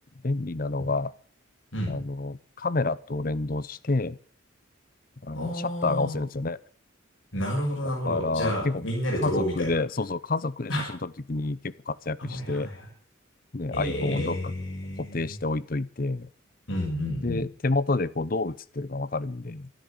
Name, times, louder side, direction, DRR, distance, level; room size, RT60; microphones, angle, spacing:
voice 1, 0.2-1.1 1.9-4.2 5.2-6.6 7.8-8.8 9.2-12.7 13.5-14.5 15.0-16.3 17.2-19.7, left 3 dB, 45° left, 18 dB, 0.7 m, -29 dB
voice 2, 1.7-2.0 5.3-6.2 7.3-9.7 10.7-10.9 12.2-12.9 13.7-15.4 16.7-17.4, equal, 70° left, -1 dB, 6.7 m, -30 dB
13.5 x 12.5 x 7.2 m, 0.44 s
head